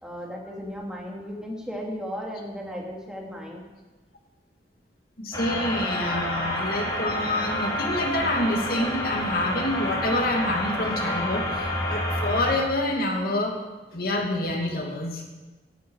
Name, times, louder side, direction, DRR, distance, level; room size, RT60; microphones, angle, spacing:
voice 1, 0.0-3.6, equal, 5° right, -2 dB, 2.7 m, -35 dB
voice 2, 5.2-13.6 13.9-15.2, left 1 dB, 55° left, 1 dB, 2.5 m, -27 dB
sound 1, 5.3-12.5, left 1 dB, 20° left, 2.6 m, -29 dB
17.5 x 11.0 x 4.8 m, 1.2 s
head